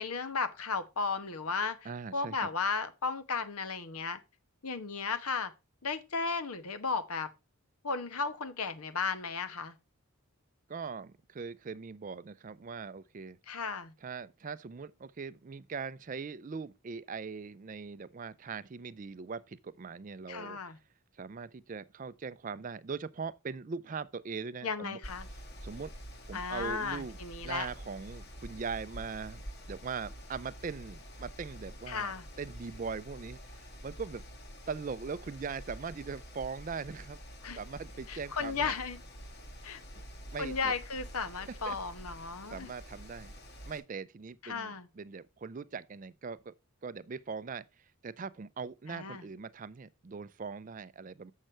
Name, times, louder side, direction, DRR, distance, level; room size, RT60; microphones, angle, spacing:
voice 1, 0.0-1.8 2.1-4.2 4.6-5.5 5.8-7.3 7.8-9.7 13.5-13.9 20.3-20.8 24.6-25.3 26.3-27.7 31.9-32.2 37.4-37.6 38.1-39.0 39.6-39.8 40.4-42.7 44.4-44.9 48.9-49.2, left 4 dB, 90° left, 1.1 m, -34 dB
voice 2, 1.8-2.4 10.7-13.4 14.0-20.6 21.2-25.0 25.6-25.9 26.3-27.2 27.4-29.4 29.7-34.2 34.7-37.2 37.6-38.7 40.3-40.7 41.4-41.8 42.5-43.3 43.6-46.5 46.8-47.6 48.0-51.3, right 5 dB, 35° right, 0.4 m, -41 dB
Mechanical fan, 25.0-43.8, equal, 50° left, 1.4 m, -47 dB
7.8 x 6.5 x 4.4 m
head